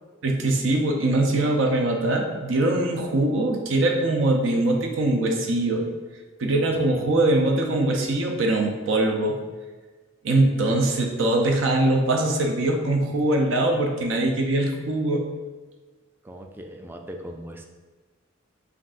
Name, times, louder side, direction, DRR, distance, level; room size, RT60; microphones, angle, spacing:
voice 1, 0.2-5.9 6.4-9.4 10.2-15.2, right 2 dB, 80° right, 2 dB, 0.6 m, -22 dB
voice 2, 6.7-7.0 16.2-17.6, equal, 10° right, 3 dB, 0.3 m, -39 dB
5.7 x 2.6 x 2.4 m, 1.3 s
head